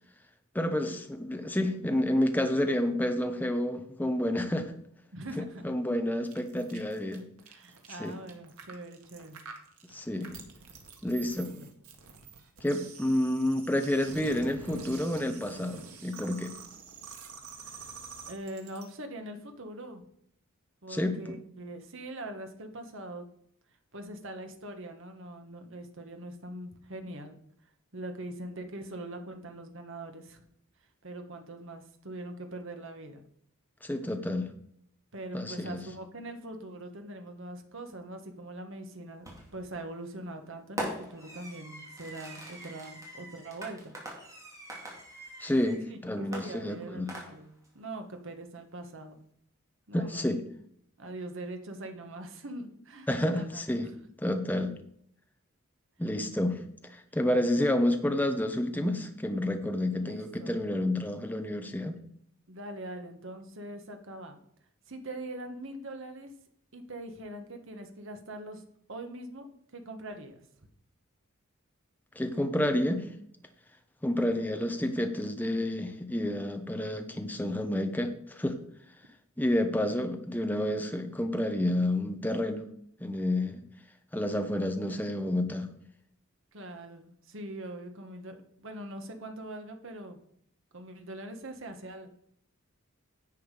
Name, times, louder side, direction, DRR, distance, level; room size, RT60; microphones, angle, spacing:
voice 1, 0.5-4.7 5.4-7.2 8.0-8.2 9.9-10.4 11.0-11.6 12.6-16.5 20.9-21.4 33.8-34.5 35.3-35.8 45.4-47.1 49.9-50.4 53.1-53.9 54.2-54.7 56.0-62.0 72.2-73.1 74.0-78.6 79.4-82.7 83.0-83.6 84.1-85.7, left 1 dB, 10° left, 6 dB, 0.8 m, -29 dB
voice 2, 5.1-5.7 7.5-9.4 11.3-11.7 17.6-17.9 18.3-20.0 20.8-23.2 23.9-27.4 27.9-30.4 31.0-33.2 35.1-43.9 45.9-49.2 49.9-50.3 51.0-53.9 59.9-60.5 62.5-64.4 64.9-66.3 66.7-68.6 68.9-69.5 69.7-70.4 86.5-90.2 90.7-92.1, right 1 dB, 60° right, 6 dB, 1.3 m, -42 dB
sound 1, 6.2-18.9, right 4 dB, 80° right, 1.8 m, -47 dB
Fireworks, 39.2-39.7 40.8-45.8 46.3-47.7, right 1 dB, 15° right, 2.4 m, -42 dB
10.5 x 7.1 x 4.9 m, 0.69 s
head